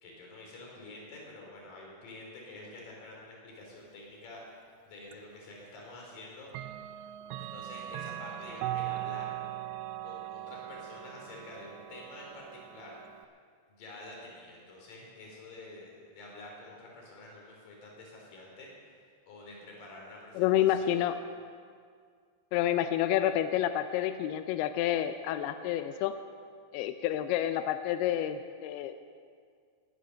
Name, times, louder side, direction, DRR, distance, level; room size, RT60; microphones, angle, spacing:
voice 1, 0.0-6.5 7.4-9.3 10.0-13.0 13.7-18.9 19.3-21.1, left 2 dB, 55° left, -1 dB, 4.7 m, -48 dB
Clock, 5.1-5.2 6.5-13.3, right 13 dB, 90° right, 2.2 m, -39 dB
voice 2, 20.4-21.1 22.5-26.2 26.7-29.1, left 11 dB, 85° left, 9 dB, 2.3 m, -29 dB
19.5 x 9.5 x 6.4 m, 2.1 s
omnidirectional pair, 5.1 m